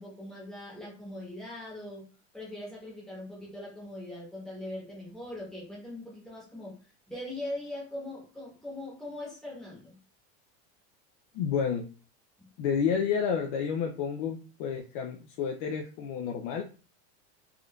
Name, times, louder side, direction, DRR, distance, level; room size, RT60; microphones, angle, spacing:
voice 1, 0.0-2.1 2.3-10.0 12.4-12.5, left 1 dB, ahead, -5 dB, 1.0 m, -41 dB
voice 2, 11.3-11.8 12.6-16.6, left 7 dB, 55° left, 2 dB, 0.5 m, -30 dB
3.5 x 2.5 x 2.2 m, 0.35 s
supercardioid pair, 165°, 35 cm